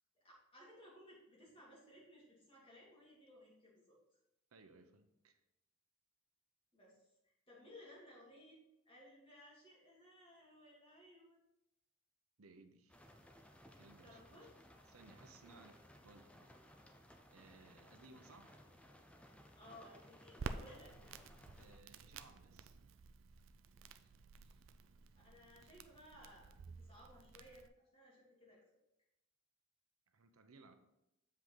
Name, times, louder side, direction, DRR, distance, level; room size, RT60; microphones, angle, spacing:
voice 1, 0.1-4.0 6.7-7.0 7.2-8.6 8.9-11.4 14.0-14.5 19.6-21.2 24.3-24.6 25.2-27.7 27.9-28.6, left 1 dB, 25° left, 2.6 m, -60 dB
voice 2, 4.5-5.4 12.4-13.0 13.8-14.5 14.9-16.4 17.3-18.6 21.5-22.8 30.1-30.8, right 3 dB, 85° right, 0.8 m, -62 dB
sound 1, 12.9-21.8, equal, 5° left, 0.5 m, -61 dB
Crackle, 20.4-27.7, right 4 dB, 60° right, 0.4 m, -51 dB
7.5 x 5.2 x 4.0 m
head